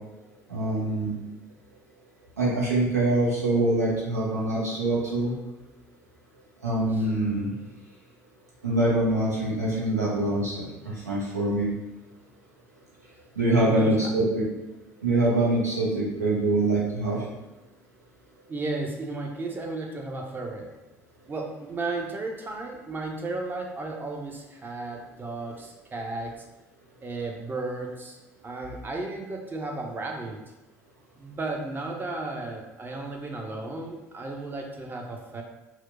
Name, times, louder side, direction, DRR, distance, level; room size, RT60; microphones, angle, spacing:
voice 1, 0.5-1.1 2.4-5.3 6.6-7.5 8.6-10.7 11.1-11.7 13.4-14.5 15.0-17.2, right 2 dB, 85° right, -5 dB, 0.8 m, -24 dB
voice 2, 13.5-14.1 18.5-20.7 21.3-26.3 27.0-28.2 28.4-30.4 31.2-35.4, right 2 dB, 25° right, 1 dB, 0.6 m, -34 dB
4.3 x 2.1 x 2.5 m, 1.1 s
figure-of-eight pair, 55°, 8 cm